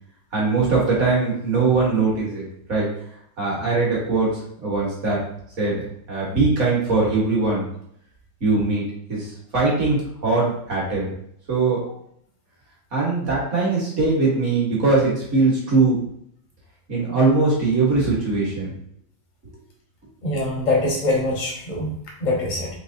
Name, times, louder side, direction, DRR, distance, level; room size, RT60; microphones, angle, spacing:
voice 1, 0.3-2.9 3.4-5.2 5.6-5.8 6.1-7.6 8.4-9.3 9.5-11.1 11.5-11.8 12.9-16.0 16.9-18.7, right 3 dB, 45° right, -5 dB, 1.3 m, -21 dB
voice 2, 20.2-21.9 22.2-22.7, left 2 dB, 40° left, -2 dB, 0.7 m, -23 dB
4.3 x 3.1 x 2.5 m, 0.70 s
omnidirectional pair, 2.1 m